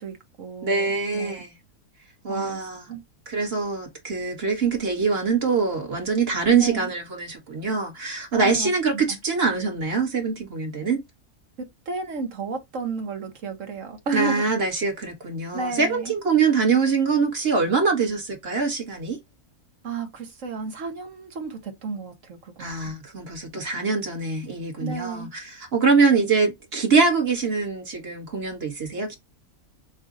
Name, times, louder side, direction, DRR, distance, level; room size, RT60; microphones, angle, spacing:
voice 1, 0.0-1.4 2.3-2.6 2.9-3.0 6.6-6.9 8.3-9.0 11.9-14.4 15.5-16.1 19.8-22.9 24.8-25.3, right 4 dB, 60° right, 1.4 m, -32 dB
voice 2, 0.6-1.5 2.2-2.9 3.3-11.0 14.1-19.2 22.6-29.2, right 4 dB, 45° right, 1.6 m, -24 dB
6.1 x 2.5 x 2.6 m
omnidirectional pair, 1.6 m